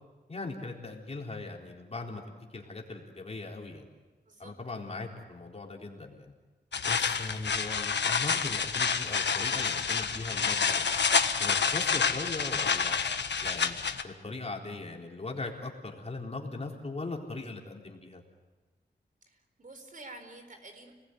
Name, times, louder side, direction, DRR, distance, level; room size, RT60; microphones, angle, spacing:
voice 1, 0.3-3.8 4.4-6.3 6.9-10.8 11.4-13.0 13.4-13.8 14.0-18.2, left 3 dB, 35° left, 0 dB, 4.0 m, -39 dB
sound 1, 6.7-14.0, left 6 dB, 75° left, 1.4 m, -28 dB
voice 2, 19.3-20.9, right 2 dB, 50° right, 6 dB, 4.5 m, -48 dB
29.5 x 20.0 x 9.4 m, 1.3 s
wide cardioid pair, 140°, 18 cm